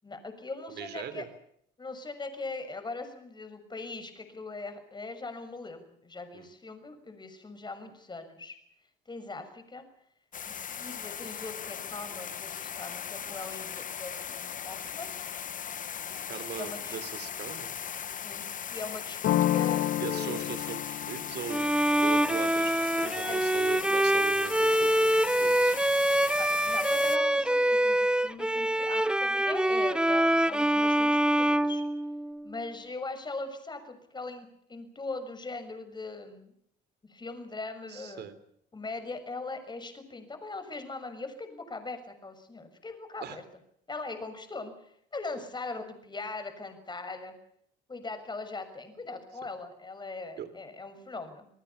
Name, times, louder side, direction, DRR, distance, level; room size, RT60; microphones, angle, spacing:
voice 1, 0.0-1.3 1.8-8.6 9.1-9.8 10.5-15.1 16.6-17.0 18.1-20.6 23.3-23.4 26.4-31.8 32.4-36.5 37.0-38.3 38.7-43.4 43.9-47.3 47.9-51.5, left 3 dB, 25° left, 9 dB, 6.6 m, -40 dB
voice 2, 0.7-1.3 6.3-6.5 16.3-17.7 20.0-21.7 22.0-25.8 37.9-38.4 43.2-43.4 50.4-50.5, right 9 dB, 65° right, 13 dB, 3.6 m, -40 dB
sound 1, 10.3-27.2, left 8 dB, 45° left, 1.2 m, -38 dB
sound 2, 19.2-24.8, left 12 dB, 65° left, 1.5 m, -32 dB
Bowed string instrument, 21.5-32.5, right 1 dB, 5° right, 1.0 m, -25 dB
28.5 x 19.5 x 7.2 m, 0.69 s
cardioid pair, 100°, 19 cm